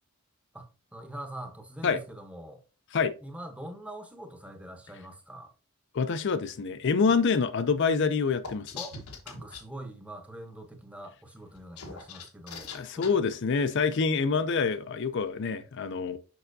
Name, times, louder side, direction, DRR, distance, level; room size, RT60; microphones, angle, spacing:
voice 1, 0.5-2.6 3.2-5.5 7.1-7.2 8.7-9.0 9.2-13.1, right 1 dB, 5° right, 0.8 m, -43 dB
voice 2, 5.9-8.7 12.7-16.2, left 5 dB, 55° left, 0.4 m, -26 dB
sound 1, 8.4-9.6 11.5-13.1, left 5 dB, 90° left, 1.2 m, -41 dB
6.5 x 5.5 x 2.6 m
head